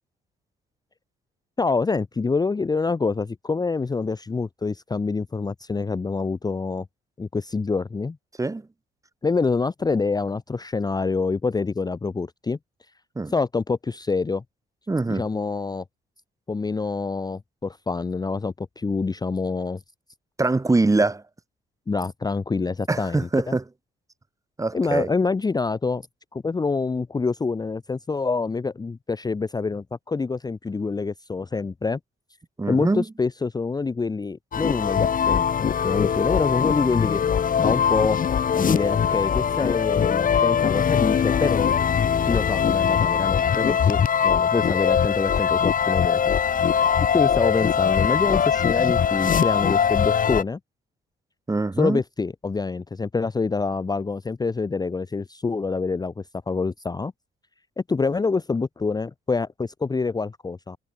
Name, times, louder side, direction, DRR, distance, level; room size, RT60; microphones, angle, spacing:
voice 1, 1.6-6.9 7.2-8.2 9.2-12.6 13.3-14.4 15.1-15.8 16.5-19.8 21.9-23.6 24.7-26.1 26.3-32.0 32.7-37.2 37.6-38.2 38.5-41.7 42.2-46.4 47.1-50.6 51.8-57.1 57.9-60.8, left 4 dB, 20° left, 0.6 m, -26 dB
voice 2, 14.9-15.2 20.4-21.2 22.9-23.6 24.6-25.1 32.6-33.0 51.5-52.0, right 3 dB, 15° right, 1.1 m, -23 dB
sound 1, 34.5-50.4, left 7 dB, 45° left, 1.0 m, -21 dB
cardioid pair, 90°, 20 cm